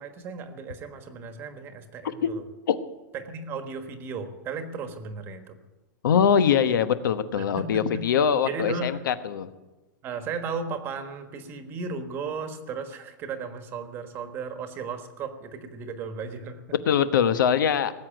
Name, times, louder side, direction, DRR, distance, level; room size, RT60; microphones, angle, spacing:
voice 1, 0.0-2.4 3.1-5.6 7.4-8.0 8.4-9.0 10.0-16.6, right 4 dB, 20° right, 8 dB, 1.3 m, -35 dB
voice 2, 6.0-9.5 16.9-17.9, left 8 dB, 75° left, 11 dB, 1.1 m, -22 dB
19.0 x 8.0 x 9.1 m, 1.1 s
supercardioid pair, 165°, 11 cm